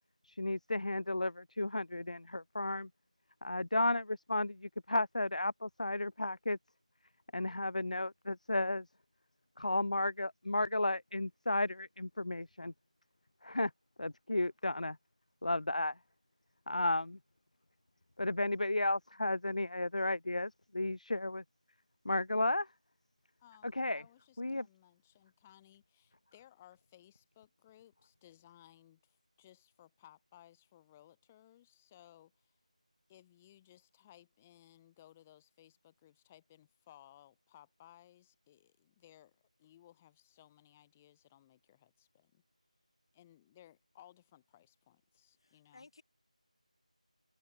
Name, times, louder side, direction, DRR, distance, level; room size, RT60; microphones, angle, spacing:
voice 1, 0.2-2.9 3.4-6.6 7.3-8.9 9.6-12.7 13.4-13.7 14.0-15.0 15.4-16.0 16.7-17.2 18.2-21.4 22.0-22.7 23.6-24.0 24.4-24.7, left 2 dB, 70° left, 1.4 m, -33 dB
voice 2, 23.4-32.6 33.1-42.4 43.1-45.9, left 12 dB, 10° left, 4.4 m, -61 dB
voice 3, 45.4-46.0, left 3 dB, 40° left, 6.7 m, -58 dB
figure-of-eight pair, 170°, 4 cm